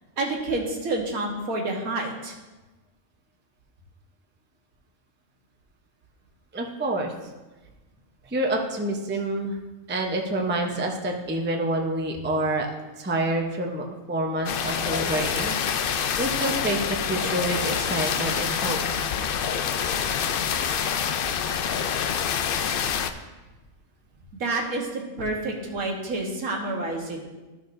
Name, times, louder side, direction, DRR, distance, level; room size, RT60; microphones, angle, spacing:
voice 1, 0.2-2.3 20.0-20.2 24.3-27.3, right 2 dB, 80° right, 0 dB, 1.7 m, -29 dB
voice 2, 6.5-7.1 8.2-9.6 9.9-12.7 13.0-18.8, right 1 dB, 10° right, 1 dB, 0.5 m, -28 dB
sound 1, 14.5-23.1, left 7 dB, 90° left, 0.4 m, -26 dB
13.5 x 6.0 x 2.6 m, 1.2 s
omnidirectional pair, 1.5 m